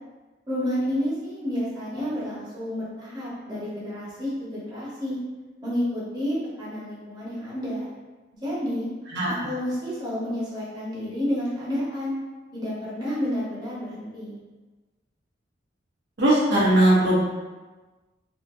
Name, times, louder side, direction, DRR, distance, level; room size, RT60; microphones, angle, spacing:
voice 1, 0.5-5.2 5.6-7.9 8.4-8.9 9.4-12.2 12.5-14.4, equal, 25° right, -9 dB, 1.0 m, -30 dB
voice 2, 16.2-17.2, right 1 dB, 65° right, -7 dB, 1.0 m, -19 dB
2.8 x 2.5 x 2.6 m, 1.2 s
head